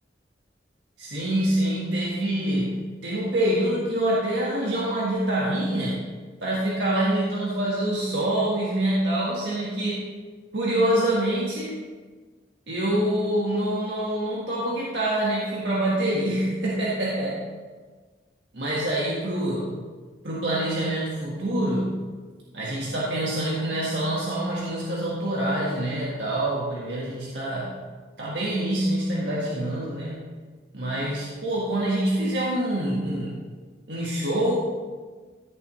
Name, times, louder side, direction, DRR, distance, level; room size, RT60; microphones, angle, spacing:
voice 1, 1.0-6.0 6.4-10.1 10.5-11.8 12.7-17.4 18.5-19.7 20.2-22.0 22.5-27.7 28.2-30.3 30.7-33.4 33.9-34.6, right 1 dB, 80° right, -6 dB, 1.6 m, -26 dB
14.0 x 6.9 x 3.2 m, 1.4 s
head